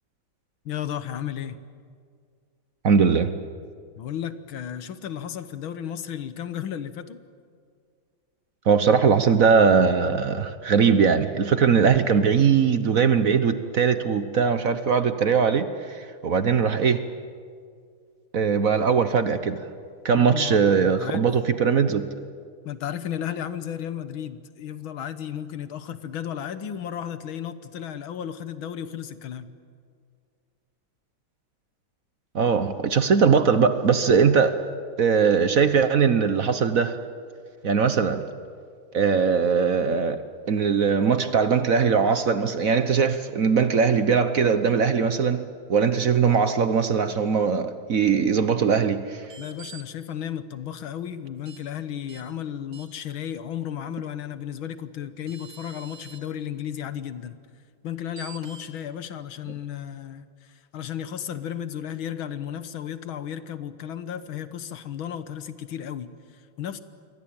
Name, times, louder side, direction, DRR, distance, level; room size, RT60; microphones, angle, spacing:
voice 1, 0.7-1.6 4.0-7.2 20.1-21.3 22.6-29.5 49.4-57.4 57.8-66.8, left 9 dB, 80° left, 12 dB, 2.0 m, -34 dB
voice 2, 2.8-3.3 8.7-17.0 18.3-19.6 20.0-22.1 32.3-34.6 35.0-37.0 37.6-38.2 38.9-49.2, right 6 dB, 50° right, 10 dB, 1.2 m, -20 dB
sound 1, 49.2-49.8 51.5-51.6 52.1-52.2 52.7-53.1 54.8-54.9 55.3-56.2 58.2-58.7, right 7 dB, 85° right, 3.2 m, -45 dB
28.5 x 22.5 x 8.9 m, 2.2 s
omnidirectional pair, 2.2 m